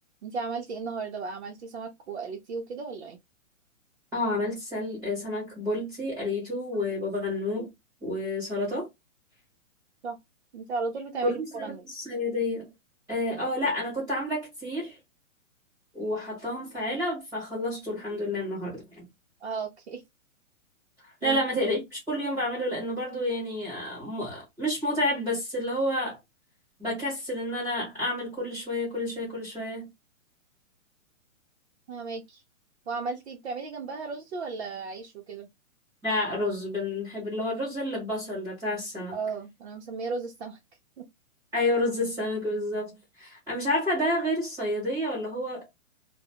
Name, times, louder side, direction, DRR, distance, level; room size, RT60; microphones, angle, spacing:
voice 1, 0.2-3.2 10.0-10.2 10.5-11.8 19.4-20.0 21.2-21.7 31.9-32.4 32.9-35.5 39.1-40.6 41.0-41.1, right 4 dB, 50° right, 0.7 m, -35 dB
voice 2, 4.1-7.7 8.0-8.9 11.2-12.7 13.1-15.0 15.9-19.0 21.2-26.2 26.8-29.9 36.0-39.1 41.5-45.7, left 1 dB, 5° right, 1.1 m, -30 dB
2.3 x 2.1 x 3.5 m
hypercardioid pair, 170°, 41 cm